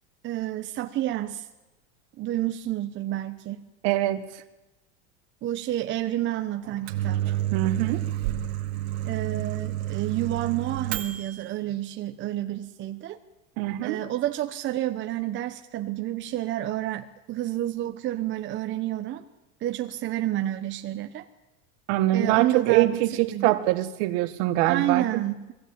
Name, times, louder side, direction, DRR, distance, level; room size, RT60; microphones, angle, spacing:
voice 1, 0.2-1.5 2.2-3.6 5.4-7.2 9.0-13.2 13.8-19.2 19.6-21.3 22.1-23.5 24.7-25.5, right 13 dB, 35° right, 6 dB, 1.0 m, -29 dB
voice 2, 3.8-4.2 7.5-8.0 13.6-14.0 21.9-25.2, right 15 dB, 65° right, 10 dB, 1.8 m, -24 dB
Microwave oven, 6.6-11.4, right 13 dB, 85° right, 2.3 m, -30 dB
22.0 x 16.0 x 8.9 m, 1.0 s
supercardioid pair, 135°, 31 cm